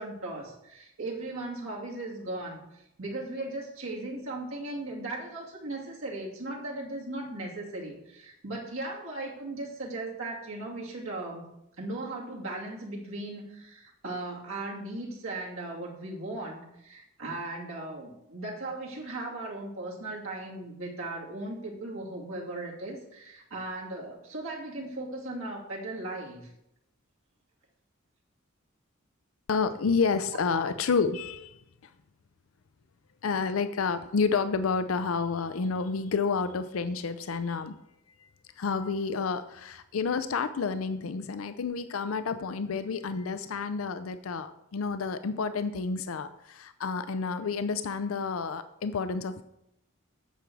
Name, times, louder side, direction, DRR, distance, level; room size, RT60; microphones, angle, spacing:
voice 1, 0.0-11.4 11.8-26.5, right 2 dB, 80° right, -3 dB, 2.4 m, -37 dB
voice 2, 29.5-31.6 33.2-37.7 38.6-49.4, left 5 dB, 85° left, 11 dB, 0.5 m, -30 dB
8.9 x 7.0 x 4.6 m, 0.82 s
head